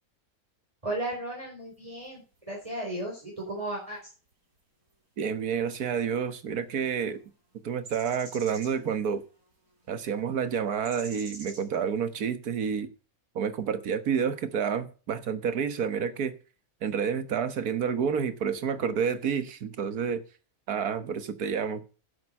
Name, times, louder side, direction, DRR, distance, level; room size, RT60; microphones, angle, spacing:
voice 1, 0.8-2.2 2.5-4.0, right 1 dB, 20° right, -3 dB, 4.2 m, -34 dB
sound 1, 1.7-2.0 2.3-2.6 3.0-3.1 3.9-4.0 4.3-4.4 5.5-5.6 5.9-6.0 6.3-6.4 6.8-7.3 7.7-9.5 9.8-9.9 10.8-12.2, right 2 dB, 65° right, 4.9 m, -47 dB
voice 2, 5.2-7.2 7.6-9.2 9.9-12.9 13.4-16.3 16.8-20.2 20.7-21.8, right 7 dB, 85° right, 11 dB, 1.7 m, -29 dB
11.0 x 8.0 x 5.4 m, 0.35 s
omnidirectional pair, 1.6 m